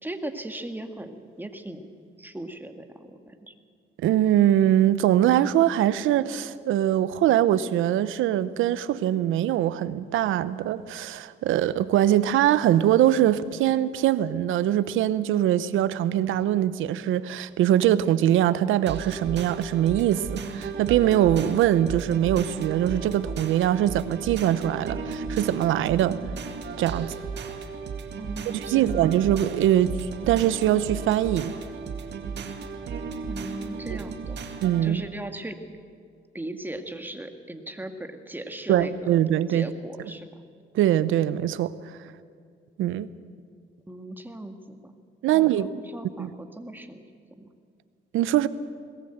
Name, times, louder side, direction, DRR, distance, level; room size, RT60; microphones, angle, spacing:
voice 1, 0.0-1.9 2.2-3.5 28.2-29.1 33.3-34.4 34.8-35.6 36.3-38.9 39.5-40.4 43.9-44.9 45.3-47.5, right 1 dB, 10° right, 1.9 m, -38 dB
voice 2, 4.0-26.2 26.8-27.1 28.5-30.0 30.3-31.5 34.6-35.0 38.7-39.7 40.7-41.7 42.8-43.1 45.2-45.7 46.2-46.3 48.1-48.5, right 12 dB, 85° right, 0.8 m, -22 dB
sound 1, 18.9-34.9, right 5 dB, 60° right, 2.2 m, -35 dB
21.0 x 18.5 x 7.9 m
cardioid pair, 90°, 20 cm